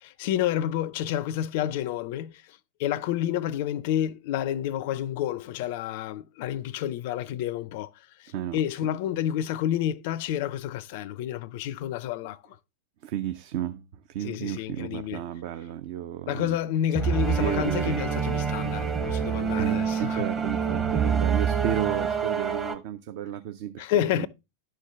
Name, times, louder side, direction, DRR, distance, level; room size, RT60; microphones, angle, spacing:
voice 1, 0.0-12.6 14.2-15.2 16.3-20.3 23.8-24.3, left 11 dB, 50° left, 0.4 m, -29 dB
voice 2, 13.0-16.6 17.4-18.0 19.6-24.1, right 11 dB, 50° right, 0.5 m, -32 dB
sound 1, 17.0-22.8, right 6 dB, 20° right, 0.9 m, -26 dB
11.5 x 4.5 x 3.4 m
figure-of-eight pair, 90°, 0 cm